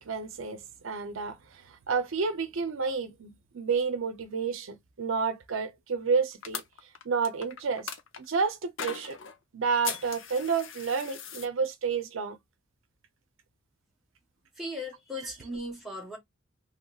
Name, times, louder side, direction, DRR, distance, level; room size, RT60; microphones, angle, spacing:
voice 1, 0.0-6.6 7.0-7.9 8.2-9.2 9.5-12.4, right 5 dB, 80° right, 0.6 m, -30 dB
sound 1, 6.4-8.2 8.8-9.4 9.8-11.5, left 7 dB, 70° left, 0.6 m, -38 dB
voice 2, 14.6-16.2, left 1 dB, ahead, 1.3 m, -37 dB
3.0 x 2.9 x 2.3 m
head